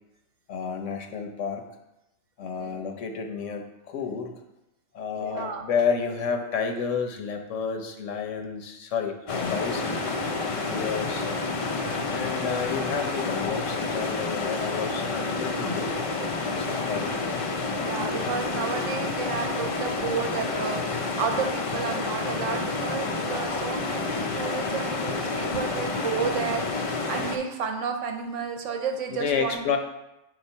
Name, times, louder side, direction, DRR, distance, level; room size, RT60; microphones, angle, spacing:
voice 1, 0.5-1.6 2.4-4.3 4.9-10.0 10.6-11.2 12.1-16.0 16.5-17.2 29.1-29.8, left 6 dB, 85° left, 5 dB, 1.1 m, -30 dB
voice 2, 5.2-5.7 17.8-29.6, right 6 dB, 85° right, 4 dB, 1.1 m, -32 dB
sound 1, 9.3-27.4, left 3 dB, 65° left, 0.3 m, -29 dB
6.3 x 3.0 x 5.3 m, 0.92 s
omnidirectional pair, 1.2 m